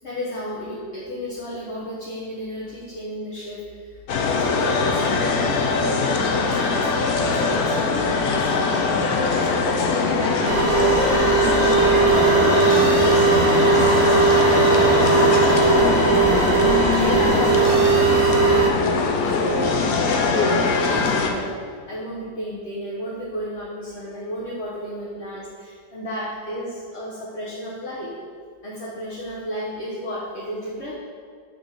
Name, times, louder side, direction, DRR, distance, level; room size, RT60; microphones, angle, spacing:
voice 1, 0.0-9.5 9.8-12.4 12.9-16.2 16.6-21.6 21.9-28.1 28.6-30.9, equal, 40° left, -7 dB, 1.2 m, -33 dB
sound 1, 4.1-21.3, left 4 dB, 65° left, 1.1 m, -21 dB
sound 2, 10.5-18.7, right 4 dB, 70° right, 0.5 m, -18 dB
6.1 x 4.3 x 6.3 m, 2.1 s
omnidirectional pair, 2.0 m